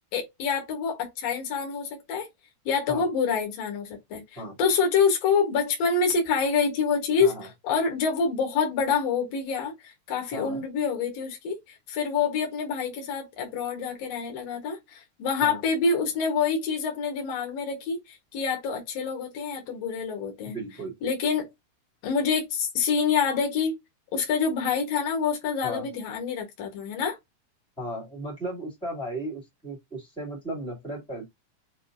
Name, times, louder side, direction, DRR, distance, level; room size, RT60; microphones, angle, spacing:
voice 1, 0.1-2.3 2.6-20.6 21.0-21.5 22.0-23.8 24.1-27.2, left 5 dB, 75° left, 1.5 m, -27 dB
voice 2, 10.3-10.6 15.4-15.6 20.4-20.9 25.6-25.9 27.8-31.3, right 1 dB, 5° left, 0.8 m, -35 dB
6.6 x 2.4 x 2.5 m
omnidirectional pair, 4.8 m